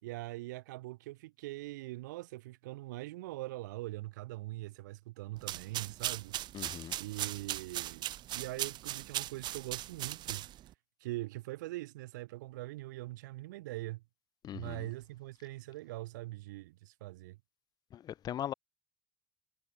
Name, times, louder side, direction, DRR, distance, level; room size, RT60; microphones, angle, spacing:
voice 1, 0.0-6.4 6.9-8.1 8.3-10.5 11.0-14.0 14.5-17.4, right 18 dB, 75° right, 3.8 m, -42 dB
sound 1, 5.4-10.7, right 13 dB, 50° right, 0.4 m, -39 dB
voice 2, 6.5-6.9 14.4-14.9 17.9-18.5, left 11 dB, 45° left, 0.4 m, -39 dB
figure-of-eight pair, 55°, 10 cm